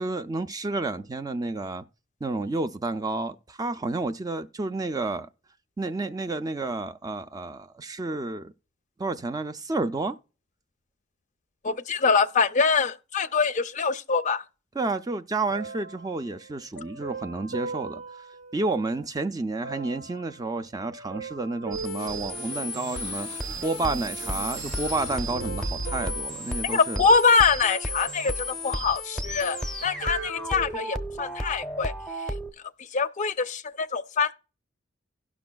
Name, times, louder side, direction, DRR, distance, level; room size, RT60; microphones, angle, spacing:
voice 1, 0.0-1.8 2.2-5.3 5.8-8.5 9.0-10.1 14.8-18.0 18.5-23.3 23.6-27.0, right 3 dB, 20° right, 0.4 m, -30 dB
voice 2, 11.6-14.4 26.6-29.6 29.8-31.9 32.9-34.3, left 5 dB, 40° left, 0.5 m, -24 dB
sound 1, 15.5-19.1 19.6-23.1 23.8-24.5 25.1-27.4 27.9-28.9 29.1-31.2 31.9-32.0, right 4 dB, 90° right, 0.9 m, -41 dB
sound 2, 21.7-32.5, equal, 5° left, 0.7 m, -34 dB
sound 3, 22.0-26.3, right 2 dB, 55° right, 0.7 m, -39 dB
17.5 x 6.0 x 2.2 m
head